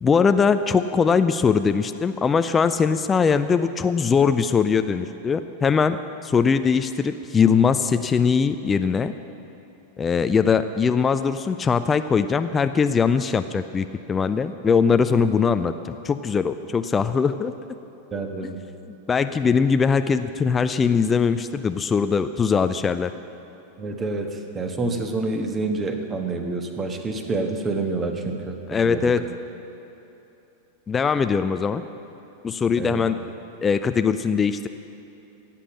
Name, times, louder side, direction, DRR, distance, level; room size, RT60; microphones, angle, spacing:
voice 1, 0.0-6.0 6.2-9.1 10.0-17.5 18.9-23.1 28.7-29.2 30.9-31.8 32.4-33.2 33.6-34.7, left 6 dB, 20° left, 10 dB, 0.4 m, -21 dB
voice 2, 18.1-18.6 23.8-29.1 32.8-33.0, right 3 dB, 20° right, 5 dB, 1.3 m, -28 dB
16.5 x 8.4 x 7.3 m, 3.0 s
figure-of-eight pair, 90°, 0 cm